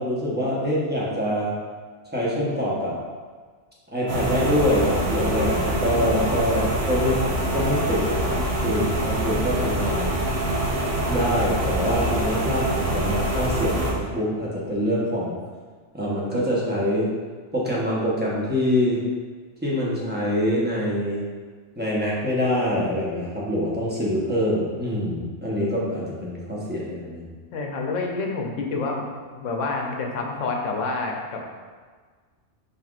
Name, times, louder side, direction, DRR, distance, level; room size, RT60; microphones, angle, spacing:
voice 1, 0.0-1.5 2.1-3.0 3.9-7.2 7.5-10.1 11.1-15.4 15.9-17.1 17.5-19.0 19.6-21.2 21.8-27.3, equal, 10° right, -6 dB, 0.8 m, -25 dB
sound 1, 4.1-13.9, right 1 dB, 60° right, 1.1 m, -25 dB
voice 2, 27.5-29.0 29.3-31.5, left 3 dB, 85° left, 1 dB, 1.0 m, -28 dB
5.6 x 3.5 x 2.4 m, 1.5 s
omnidirectional pair, 1.2 m